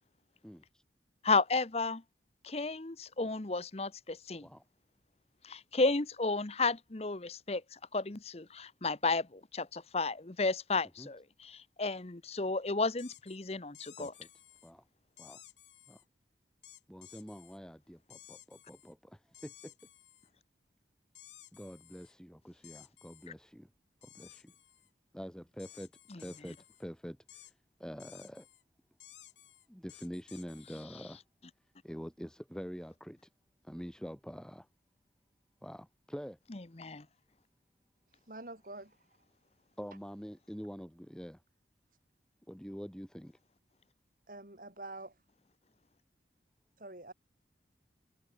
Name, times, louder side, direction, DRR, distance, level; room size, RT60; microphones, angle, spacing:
voice 1, 0.4-0.8 4.4-4.6 11.0-11.1 14.0-14.3 14.6-14.8 15.2-15.4 15.9-16.0 16.9-19.7 21.5-23.7 24.0-24.5 25.1-25.9 26.2-27.5 27.8-28.5 29.7-31.2 31.8-33.2 33.6-34.7 35.6-36.4 39.8-41.4 42.5-43.4, equal, 5° left, 3.1 m, -46 dB
voice 2, 1.2-2.0 2.4-4.5 5.4-7.6 7.9-14.1 26.1-26.2 36.5-37.0, left 3 dB, 35° left, 0.9 m, -33 dB
sound 1, 13.0-13.4 13.7-14.7 15.2-16.0 16.6-17.6 18.1-18.9 19.3-20.3 21.1-22.1 22.6-23.3 24.0-24.9 25.6-26.8 27.3-27.5 28.0-28.6 29.0-30.8, left 12 dB, 90° left, 5.0 m, -56 dB
voice 3, 38.3-39.0 44.3-45.2 46.8-47.1, right 2 dB, 50° right, 3.9 m, -46 dB
head